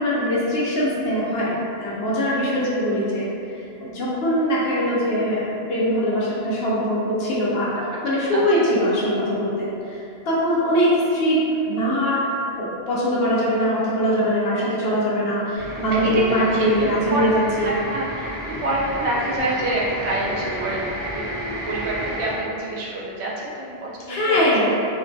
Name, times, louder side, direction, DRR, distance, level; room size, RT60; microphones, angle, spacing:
voice 1, 0.0-3.3 3.8-7.7 8.0-11.4 11.7-12.2 12.6-17.7 24.1-24.7, equal, 70° left, -7 dB, 0.8 m, -22 dB
voice 2, 8.3-8.7 14.5-14.8 15.9-21.2 21.7-24.7, right 1 dB, 85° right, -4 dB, 0.9 m, -27 dB
sound 1, 15.5-22.3, equal, 20° left, 1.2 m, -32 dB
2.5 x 2.1 x 2.6 m, 2.6 s
omnidirectional pair, 1.1 m